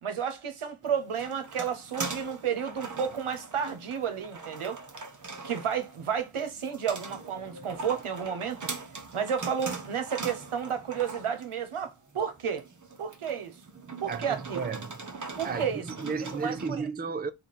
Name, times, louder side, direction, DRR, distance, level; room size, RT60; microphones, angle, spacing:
voice 1, 0.0-4.8 5.4-8.7 9.1-12.7 13.0-13.6 14.0-14.6 15.4-15.8 16.4-16.8, right 7 dB, 80° right, 0.9 m, -32 dB
sound 1, 0.8-16.7, right 4 dB, 40° right, 0.8 m, -41 dB
voice 2, 14.1-15.0 15.4-17.3, right 5 dB, 20° right, 0.4 m, -34 dB
3.3 x 2.3 x 4.1 m
wide cardioid pair, 50°, 49 cm